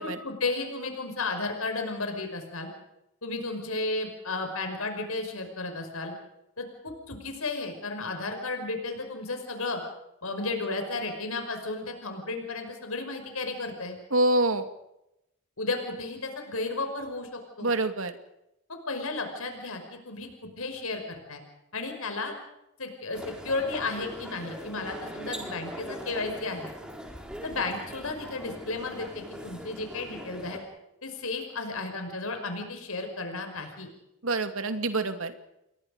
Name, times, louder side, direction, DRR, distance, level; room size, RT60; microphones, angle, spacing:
voice 1, 0.0-2.7 3.2-6.1 6.6-9.8 10.2-14.0 15.6-17.7 18.9-20.3 20.6-21.4 21.7-22.3 22.8-26.7 27.4-30.6 31.0-33.9, left 3 dB, 85° left, 5 dB, 5.6 m, -33 dB
voice 2, 14.1-14.7 17.6-18.1 34.2-35.3, right 2 dB, 80° right, 8 dB, 2.4 m, -26 dB
sound 1, 23.1-30.6, equal, 5° right, 4.0 m, -41 dB
29.5 x 22.5 x 5.2 m, 0.85 s
head